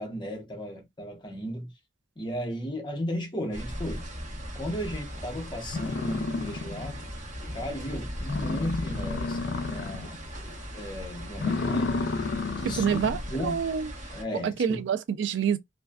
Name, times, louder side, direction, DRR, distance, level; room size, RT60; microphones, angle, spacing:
voice 1, 0.0-1.7 2.2-4.0 4.5-7.0 7.5-12.2 12.6-13.0 13.3-13.6 14.1-14.8, equal, 25° left, 0.7 m, -35 dB
sound 1, 3.5-14.2, equal, 40° right, 0.9 m, -38 dB
sound 2, 5.2-5.3 5.7-7.1 7.4-7.5 7.9-8.0 8.2-10.2 10.5-10.8 11.3-13.3, left 4 dB, 60° left, 0.4 m, -31 dB
voice 2, 12.6-13.9 14.4-15.6, right 7 dB, 75° right, 0.3 m, -27 dB
2.5 x 2.2 x 2.3 m
head